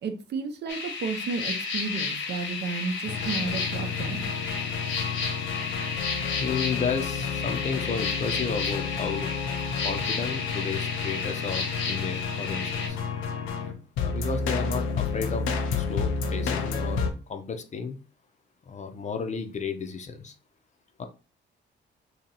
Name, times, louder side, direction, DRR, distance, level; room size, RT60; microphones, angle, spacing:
voice 1, 0.0-4.2, right 4 dB, 60° right, 7 dB, 0.6 m, -32 dB
sound 1, 0.7-12.9, left 4 dB, 75° left, 1.1 m, -32 dB
sound 2, 3.1-17.1, left 5 dB, 90° left, 0.6 m, -31 dB
voice 2, 6.4-9.3 9.8-13.0 14.0-15.5 15.8-18.0 18.7-20.3 21.0-21.1, left 5 dB, 35° left, 7 dB, 0.6 m, -33 dB
2.9 x 2.8 x 4.0 m, 0.34 s
cardioid pair, 90°, 20 cm